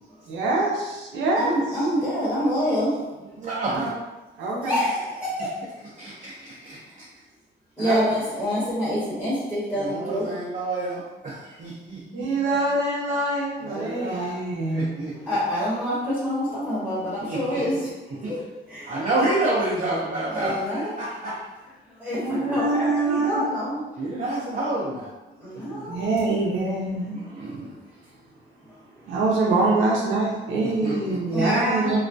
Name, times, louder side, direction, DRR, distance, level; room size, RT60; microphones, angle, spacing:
voice 1, 0.3-1.6 3.7-3.9 4.4-4.8 7.8-8.1 12.1-15.0 22.2-23.4 25.9-27.2 29.1-32.0, right 2 dB, 80° right, -4 dB, 0.6 m, -24 dB
voice 2, 1.4-3.0 4.4-5.5 7.8-10.2 15.3-17.9 18.3-18.4 18.7-18.9 20.3-21.0 22.0-23.8 25.4-26.1 31.3-32.0, equal, 5° left, -10 dB, 1.0 m, -26 dB
voice 3, 3.4-3.9 9.8-12.3 13.6-14.3 14.7-15.4 17.2-17.6 18.2-18.4 18.8-21.4 22.3-22.6 24.0-25.1 25.5-26.0 27.1-27.7 29.1-29.2 30.6-31.4, right 2 dB, 40° right, -8 dB, 0.6 m, -29 dB
2.3 x 2.1 x 2.6 m, 1.1 s
cardioid pair, 90°, 20 cm